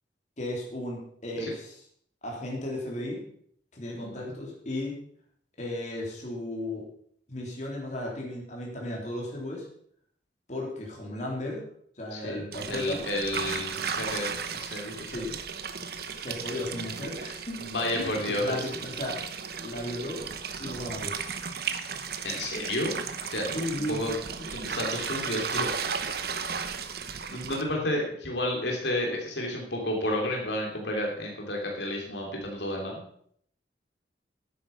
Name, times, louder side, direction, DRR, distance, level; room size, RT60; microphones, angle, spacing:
voice 1, 0.4-1.8 2.2-3.2 3.7-5.0 5.6-6.9 7.3-9.7 10.5-11.6 12.0-13.0 15.1-15.3 15.9-17.6 17.9-19.2 19.6-20.3 20.6-21.1 23.5-24.2, left 1 dB, 40° left, -2 dB, 3.5 m, -35 dB
voice 2, 4.0-4.3 12.1-15.2 17.6-18.7 22.2-22.9 23.3-24.1 24.5-25.7 27.3-33.1, left 1 dB, 70° left, -1 dB, 2.9 m, -31 dB
sound 1, 12.5-27.6, right 6 dB, 60° right, 1.0 m, -35 dB
11.0 x 9.2 x 5.6 m, 0.64 s
head